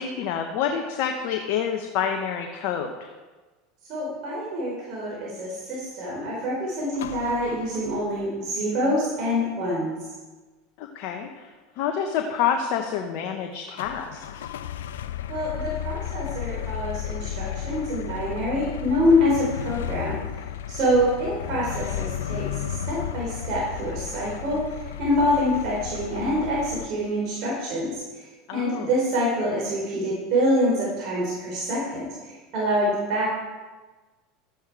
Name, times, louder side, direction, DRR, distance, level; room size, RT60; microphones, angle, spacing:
voice 1, 0.0-3.1 10.8-11.5 11.8-14.2 28.5-28.9, left 8 dB, 60° left, 4 dB, 1.1 m, -28 dB
voice 2, 3.9-10.0 15.3-33.3, equal, 55° right, -4 dB, 4.1 m, -26 dB
sound 1, 6.9-8.3 13.8-26.9, left 11 dB, 75° left, 0.6 m, -34 dB
14.0 x 9.3 x 4.8 m, 1.3 s
hypercardioid pair, 85°, 0 cm